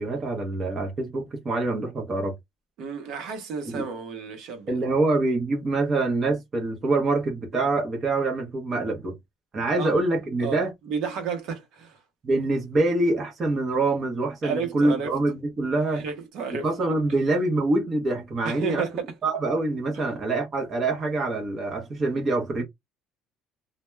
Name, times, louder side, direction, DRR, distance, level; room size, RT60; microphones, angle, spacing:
voice 1, 0.0-2.3 3.7-3.8 4.7-9.2 9.5-10.7 12.2-16.0 16.6-18.9 19.2-22.6, right 2 dB, 25° right, 0.7 m, -25 dB
voice 2, 2.8-4.7 9.8-9.9 10.4-10.6 10.9-12.0 14.4-15.1 15.9-17.0 18.4-19.0, right 6 dB, 55° right, 0.7 m, -32 dB
2.2 x 2.0 x 3.1 m
cardioid pair, 170°, 0 cm